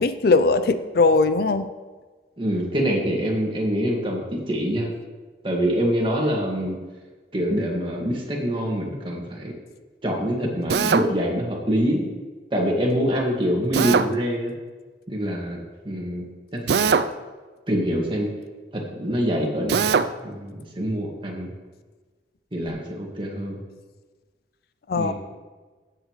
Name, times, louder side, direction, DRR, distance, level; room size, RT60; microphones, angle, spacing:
voice 1, 0.0-1.7 24.9-25.1, left 3 dB, 55° left, 11 dB, 0.4 m, -19 dB
voice 2, 2.4-4.9 5.4-6.8 7.3-9.5 10.0-12.1 12.5-14.5 15.1-15.6 15.8-16.3 16.5-17.0 17.7-18.3 18.7-21.5 22.5-23.6 24.9-25.1, equal, 30° right, -1 dB, 1.9 m, -25 dB
Drill, 10.7-11.1 13.7-14.1 16.7-17.1 19.7-20.1, right 5 dB, 65° right, 0.4 m, -20 dB
16.5 x 7.7 x 3.2 m, 1.4 s
head